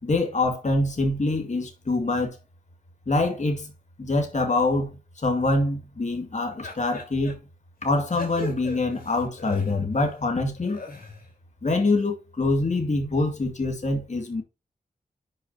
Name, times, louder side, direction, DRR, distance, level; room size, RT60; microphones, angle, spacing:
voice 1, 0.0-2.4 3.1-3.7 4.0-7.4 7.8-10.8 11.6-14.4, left 2 dB, 50° left, 2.2 m, -25 dB
sound 1, 6.6-7.3 7.8-10.1 10.5-11.3, left 1 dB, 70° left, 4.0 m, -38 dB
10.0 x 5.9 x 2.8 m
cardioid pair, 50°, 16 cm